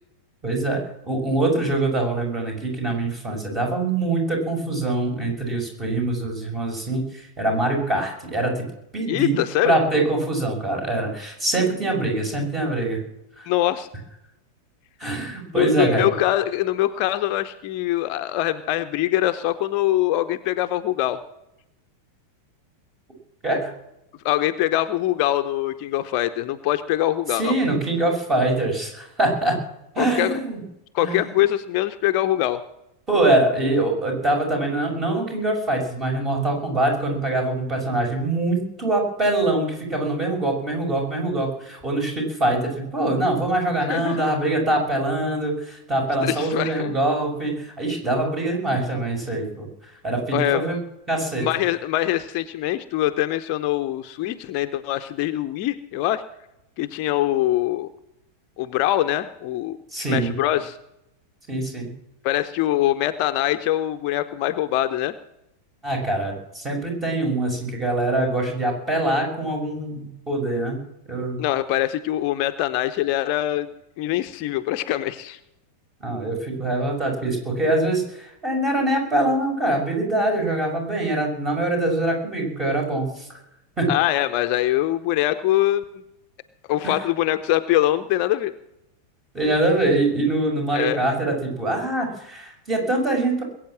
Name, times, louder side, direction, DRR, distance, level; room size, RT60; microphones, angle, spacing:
voice 1, 0.4-8.7 8.9-9.4 9.6-13.0 13.4-13.5 15.0-16.1 23.4-23.7 27.3-29.6 29.9-30.6 31.0-31.2 33.1-49.7 50.0-50.8 51.1-51.5 59.9-60.3 61.5-61.9 65.8-70.8 71.1-71.4 76.0-83.3 83.8-83.9 86.8-86.9 89.3-93.4, right 2 dB, 20° right, 2 dB, 6.3 m, -24 dB
voice 2, 9.1-9.8 13.5-13.9 15.5-21.2 24.2-27.6 30.0-30.4 30.9-32.6 43.8-44.3 46.2-47.0 50.3-50.6 51.4-56.2 56.8-57.9 58.6-59.8 60.1-60.8 62.2-65.1 71.4-73.7 74.0-75.4 83.9-85.8 86.7-88.5 90.7-91.0, left 14 dB, 45° left, 9 dB, 0.8 m, -23 dB
21.5 x 8.6 x 7.5 m, 0.85 s
figure-of-eight pair, 90°, 0 cm